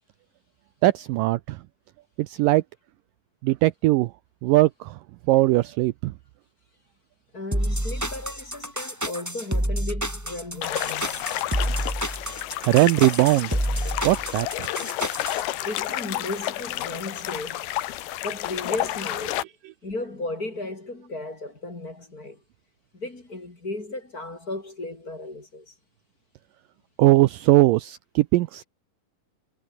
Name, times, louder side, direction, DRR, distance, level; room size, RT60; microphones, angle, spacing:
voice 1, 0.8-1.6 2.2-2.6 3.4-4.1 4.4-5.0 5.3-6.1 12.7-13.5 14.0-14.7 27.0-28.6, right 18 dB, 80° right, 2.1 m, -20 dB
voice 2, 7.3-11.1 15.6-17.8 18.2-19.5 19.8-22.4 22.9-25.7, left 2 dB, 25° left, 4.1 m, -35 dB
sound 1, 7.5-15.4, right 1 dB, 5° right, 4.0 m, -28 dB
sound 2, 10.6-19.4, left 14 dB, 80° left, 3.1 m, -31 dB
omnidirectional pair, 4.3 m